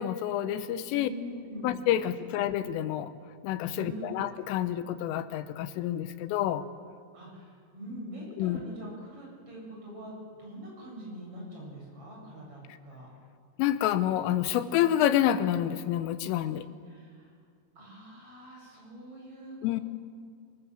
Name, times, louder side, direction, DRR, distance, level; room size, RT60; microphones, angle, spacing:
voice 1, 0.0-1.1 1.6-3.1 3.4-6.6 8.4-8.6 13.6-16.7 19.6-19.8, left 11 dB, 85° left, 11 dB, 3.3 m, -28 dB
voice 2, 0.9-1.7 2.2-2.3 3.7-4.2 7.1-10.1 10.4-13.1 16.9-17.3 17.8-19.8, right 1 dB, 25° right, -3 dB, 8.7 m, -44 dB
26.0 x 19.5 x 7.7 m, 2.2 s
omnidirectional pair, 5.9 m